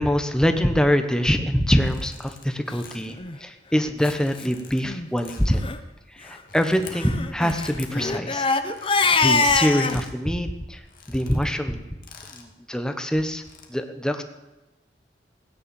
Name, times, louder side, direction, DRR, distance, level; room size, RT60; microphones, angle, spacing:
voice 1, 0.0-5.7 6.1-8.5 9.2-10.8 11.1-11.9 12.3-13.4 13.7-14.2, equal, 5° left, 7 dB, 1.2 m, -24 dB
sound 1, 1.7-2.5 2.8-3.2 4.0-4.8 5.2-5.6 6.3-7.0 7.5-7.9 8.6-9.2 9.8-10.2 10.5-10.6 10.8-11.5 12.0-12.5 13.3-13.7, left 5 dB, 50° left, 2.5 m, -46 dB
Crying sobbing, 3.1-3.4 4.0-4.1 4.4-4.5 4.8-5.1 5.5-5.8 6.9-10.0, left 4 dB, 30° left, 1.0 m, -23 dB
17.0 x 10.0 x 7.2 m, 1.1 s
head